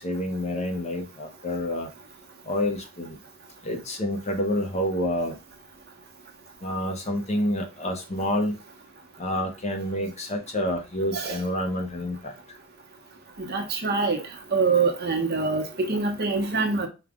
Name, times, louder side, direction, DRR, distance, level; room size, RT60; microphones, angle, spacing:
voice 1, 0.0-1.9 2.4-3.2 3.6-5.4 6.6-8.6 9.2-12.3, left 1 dB, 35° left, 0.9 m, -28 dB
voice 2, 13.4-14.2 14.5-16.9, right 4 dB, 50° right, 1.0 m, -24 dB
5.2 x 2.4 x 3.7 m
head